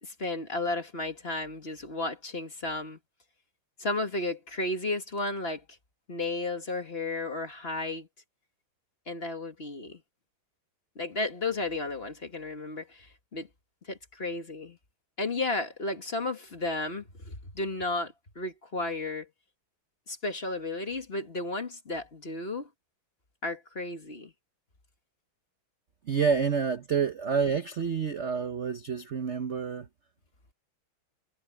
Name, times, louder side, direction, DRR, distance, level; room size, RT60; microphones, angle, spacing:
voice 1, 0.0-3.0 3.8-5.6 6.1-8.1 9.1-10.0 11.0-13.1 13.3-13.5 13.9-14.8 15.2-19.3 20.1-22.7 23.4-24.3, left 2 dB, 30° left, 1.9 m, -33 dB
voice 2, 26.1-29.9, right 6 dB, 45° right, 0.9 m, -28 dB
omnidirectional pair, 2.3 m